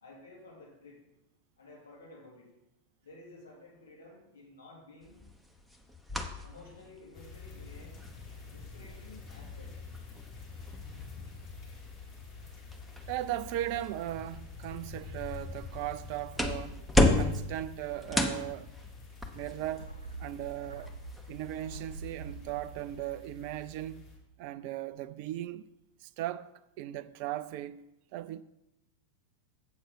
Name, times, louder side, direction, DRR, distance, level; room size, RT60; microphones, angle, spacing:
voice 1, 0.0-1.0 1.6-2.5 3.0-5.2 6.4-7.9 8.5-9.7, left 2 dB, 70° left, 3.4 m, -53 dB
sound 1, 5.0-22.4, left 1 dB, ahead, 0.9 m, -35 dB
sound 2, 7.1-24.2, left 4 dB, 35° left, 3.4 m, -47 dB
voice 2, 13.1-16.8 17.1-18.7 19.3-20.9 21.3-24.0 24.4-25.7 26.0-27.8 28.1-28.4, right 14 dB, 45° right, 0.4 m, -37 dB
sound 3, 19.7-24.3 24.6-24.7, right 3 dB, 80° right, 1.0 m, -47 dB
8.1 x 6.4 x 6.0 m
figure-of-eight pair, 90°, 0 cm